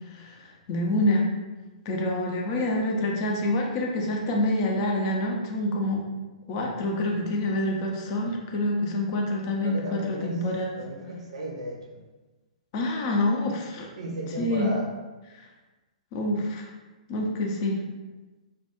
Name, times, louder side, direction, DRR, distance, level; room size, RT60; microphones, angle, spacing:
voice 1, 0.1-1.3 1.9-6.1 6.5-10.7 12.7-13.9 14.4-14.7 16.1-16.7 17.1-17.8, left 1 dB, 35° left, 0 dB, 0.4 m, -27 dB
voice 2, 9.6-10.5 10.8-12.0 14.0-14.9, right 2 dB, 55° right, 0 dB, 0.5 m, -35 dB
2.3 x 2.2 x 2.9 m, 1.2 s
figure-of-eight pair, 115°, 4 cm